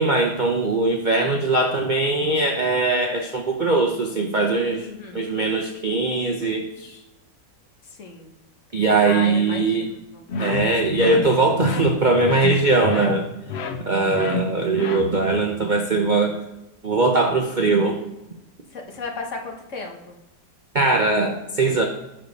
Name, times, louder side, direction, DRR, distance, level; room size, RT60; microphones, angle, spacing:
voice 1, 0.0-4.9 5.1-7.0 8.7-9.9 10.4-13.2 13.8-16.4 16.8-18.0 20.7-21.8, right 3 dB, 60° right, 2 dB, 0.4 m, -21 dB
voice 2, 4.8-5.2 7.8-8.3 9.0-10.2 13.9-14.3 18.7-20.2, left 3 dB, 45° left, 2 dB, 1.3 m, -35 dB
sound 1, 10.3-15.4, left 4 dB, 65° left, 0.6 m, -29 dB
7.7 x 6.6 x 5.2 m, 0.92 s
omnidirectional pair, 2.0 m